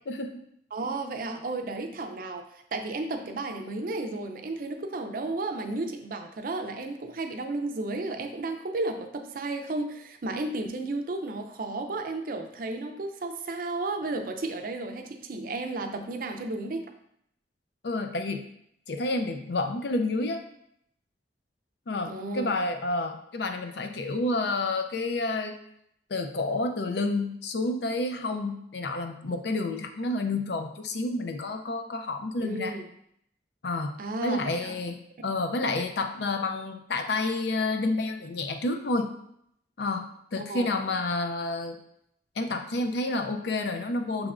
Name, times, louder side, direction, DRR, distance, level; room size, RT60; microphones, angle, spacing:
voice 1, 0.1-0.4 17.8-18.4 18.9-20.4 21.9-25.6 26.1-32.8 33.6-39.1 39.8-41.8 42.4-44.3, left 2 dB, 65° left, 6 dB, 0.5 m, -29 dB
voice 2, 0.7-16.8 22.1-22.5 32.4-32.9 34.0-34.7 35.2-35.3 40.4-40.7, right 2 dB, 50° right, 5 dB, 0.5 m, -33 dB
6.0 x 3.3 x 2.4 m, 0.72 s
head